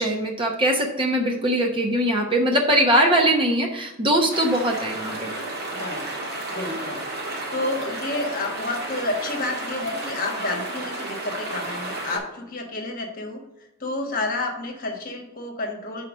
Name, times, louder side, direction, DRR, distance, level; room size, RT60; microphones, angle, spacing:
voice 1, 0.0-5.3, right 1 dB, 25° right, 2 dB, 0.8 m, -21 dB
sound 1, 4.3-12.2, right 2 dB, 50° right, 1.7 m, -32 dB
voice 2, 5.7-6.0 6.5-7.0 7.5-13.4 13.8-16.1, left 2 dB, 40° left, 2 dB, 1.2 m, -30 dB
5.8 x 4.3 x 6.1 m, 0.91 s
head